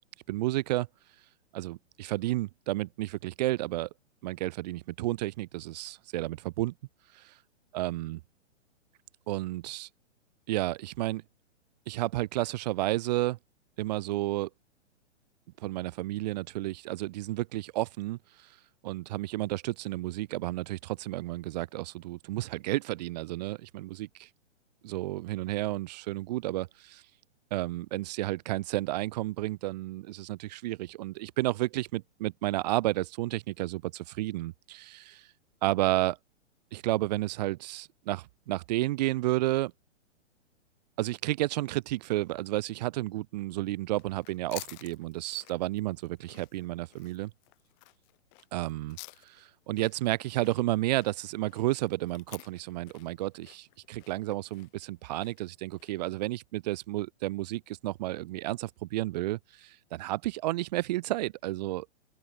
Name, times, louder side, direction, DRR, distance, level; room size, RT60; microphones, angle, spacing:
voice 1, 0.3-0.9 1.5-3.9 4.2-6.7 7.1-7.3 7.7-8.2 9.3-9.9 10.5-11.2 11.9-13.4 13.8-14.5 15.6-18.5 18.8-24.3 24.8-27.0 27.5-35.3 35.6-36.2 36.7-39.7 41.0-47.3 48.5-49.0 49.2-61.9, right 17 dB, 35° right, 0.6 m, -31 dB
sound 1, 43.9-56.1, left 31 dB, 35° left, 7.1 m, -51 dB
open air
hypercardioid pair, 125°, 36 cm